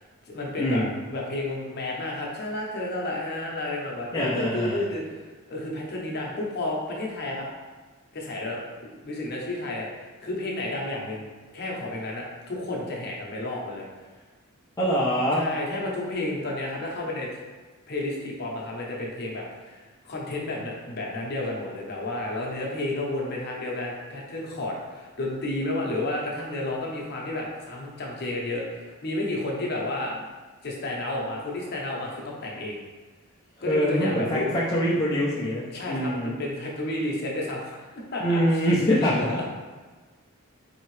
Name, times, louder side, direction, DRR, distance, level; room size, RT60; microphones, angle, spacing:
voice 1, 0.0-0.8 1.1-7.5 8.1-11.3 11.5-13.9 15.3-17.3 17.9-30.1 30.6-32.8 33.6-34.5 35.7-38.6 39.0-39.4, left 2 dB, 45° left, -2 dB, 0.7 m, -31 dB
voice 2, 0.6-0.9 4.1-4.8 14.8-15.5 33.7-36.4 38.2-39.3, equal, 15° left, -8 dB, 0.4 m, -24 dB
4.3 x 2.7 x 3.1 m, 1.4 s
head